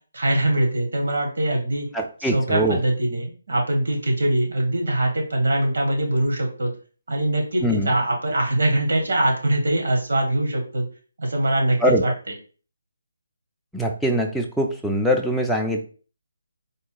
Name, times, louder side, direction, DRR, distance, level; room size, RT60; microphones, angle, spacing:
voice 1, 0.1-1.9 2.2-6.7 7.1-10.8 11.2-12.3, right 1 dB, 75° right, 1 dB, 1.5 m, -22 dB
voice 2, 1.9-2.8 7.6-7.9 11.8-12.0 13.7-15.8, equal, ahead, -1 dB, 0.3 m, -22 dB
3.8 x 2.3 x 3.8 m, 0.39 s
figure-of-eight pair, 155°, 0 cm